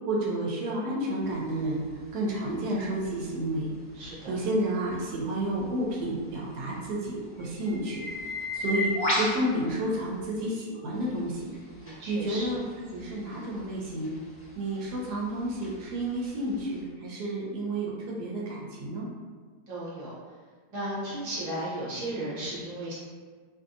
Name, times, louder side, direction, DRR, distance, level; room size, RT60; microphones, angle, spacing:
voice 1, 0.1-1.8 2.1-3.7 4.0-8.0 8.5-11.5 12.1-14.1 14.6-19.1, right 1 dB, 80° right, -4 dB, 1.2 m, -31 dB
sound 1, 1.2-10.5 10.9-16.8, left 1 dB, 40° left, 0.8 m, -37 dB
voice 2, 3.9-4.4 11.8-12.6 19.7-20.2 20.7-22.9, right 1 dB, 35° right, -9 dB, 0.7 m, -35 dB
2.7 x 2.6 x 2.5 m, 1.5 s
omnidirectional pair, 1.7 m